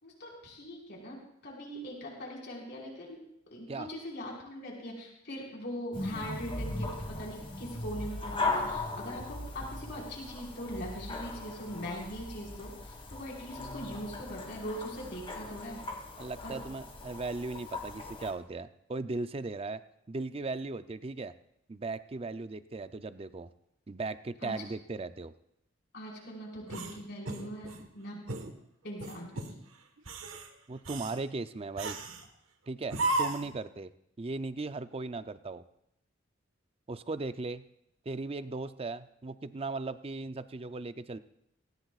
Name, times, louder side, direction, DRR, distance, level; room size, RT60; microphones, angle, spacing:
voice 1, 0.0-1.2 1.4-3.2 3.5-6.9 7.2-15.8 16.4-16.6 24.4-24.5 25.9-28.2 28.8-29.5, equal, 60° left, -3 dB, 4.9 m, -41 dB
sound 1, 5.9-18.3, left 2 dB, 25° left, 1.8 m, -38 dB
voice 2, 16.2-19.8 20.1-21.3 21.7-23.5 23.9-25.3 30.7-32.0 32.7-33.9 34.2-35.6 36.9-37.6 38.1-41.2, right 3 dB, 30° right, 12 dB, 0.5 m, -37 dB
sound 2, 26.7-27.9 28.3-28.5 29.0-29.5 30.0-30.5 30.9-31.2 31.8-32.3 32.9-33.6, right 2 dB, 90° right, 1.4 m, -34 dB
18.0 x 18.0 x 2.4 m, 0.78 s
head